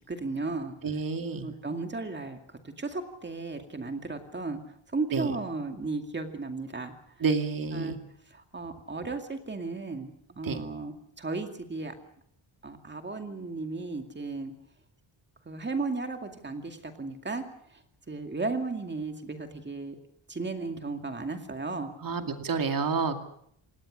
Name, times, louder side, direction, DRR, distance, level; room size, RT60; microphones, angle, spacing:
voice 1, 0.1-0.8 1.3-2.4 2.8-4.6 4.9-6.9 7.7-8.0 8.3-11.9 12.6-14.5 15.5-17.4 18.1-20.0 20.3-21.9, right 3 dB, 20° right, 6 dB, 2.3 m, -35 dB
voice 2, 0.8-1.6 5.1-5.3 7.2-8.0 10.4-10.6 22.0-23.2, right 5 dB, 45° right, 6 dB, 2.4 m, -29 dB
27.5 x 19.0 x 6.5 m, 0.66 s
wide cardioid pair, 165°, 48 cm